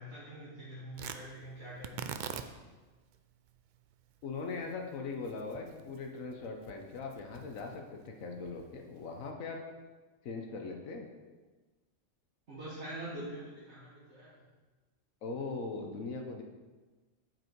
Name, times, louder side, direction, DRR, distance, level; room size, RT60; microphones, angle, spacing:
voice 1, 0.0-2.0 12.5-14.4, right 1 dB, 55° right, -9 dB, 1.9 m, -44 dB
Tearing, 0.9-9.3, right 7 dB, 80° right, 0.4 m, -47 dB
voice 2, 4.2-9.6 10.2-11.1 15.2-16.4, left 4 dB, 85° left, 2 dB, 1.3 m, -40 dB
7.8 x 6.1 x 4.6 m, 1.3 s
omnidirectional pair, 1.4 m